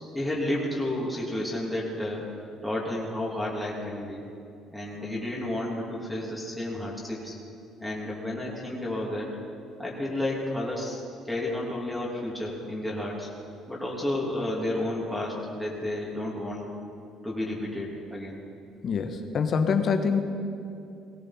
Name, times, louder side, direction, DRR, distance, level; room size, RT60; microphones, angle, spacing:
voice 1, 0.1-2.2 2.6-4.2 4.7-7.4 7.8-9.3 9.8-13.3 13.7-16.7 17.2-18.4, left 1 dB, 5° left, -5 dB, 3.1 m, -31 dB
voice 2, 18.8-20.2, left 5 dB, 50° left, 6 dB, 1.4 m, -25 dB
19.0 x 17.0 x 4.5 m, 2.6 s
cardioid pair, 105°, 0 cm